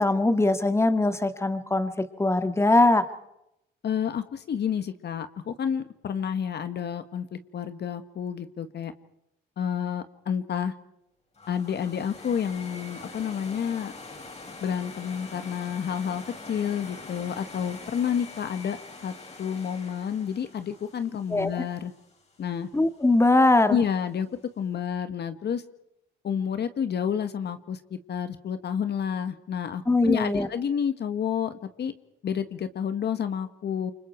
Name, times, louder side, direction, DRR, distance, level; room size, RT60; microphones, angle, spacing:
voice 1, 0.0-3.1 21.3-21.5 22.7-23.8 29.9-30.5, left 2 dB, 15° left, 10 dB, 1.9 m, -21 dB
voice 2, 3.8-8.9 9.6-10.7 11.5-13.9 14.6-18.8 19.0-21.9 22.4-22.7 23.7-24.3 24.6-25.6 26.2-31.9 32.2-33.9, left 8 dB, 60° left, 10 dB, 1.6 m, -30 dB
sound 1, 11.3-22.4, left 3 dB, 35° left, 5.1 m, -44 dB
29.0 x 25.0 x 4.6 m, 0.81 s
cardioid pair, 90°, 20 cm